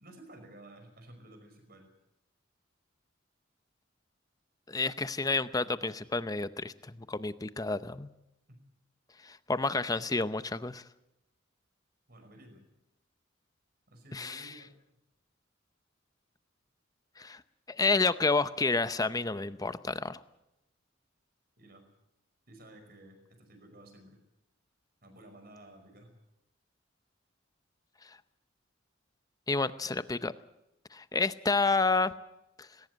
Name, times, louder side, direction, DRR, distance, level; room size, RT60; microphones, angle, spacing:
voice 1, 0.0-1.9 8.5-8.6 9.7-10.2 12.1-12.7 13.9-14.8 21.6-21.9 22.5-24.2 25.0-26.2, right 1 dB, 50° right, 6 dB, 5.3 m, -53 dB
voice 2, 4.7-8.1 9.2-10.8 14.1-14.5 17.2-17.4 17.7-20.2 29.5-30.3 30.9-32.1 32.6-32.7, left 3 dB, 20° left, 13 dB, 0.7 m, -30 dB
20.0 x 18.5 x 8.0 m, 0.90 s
head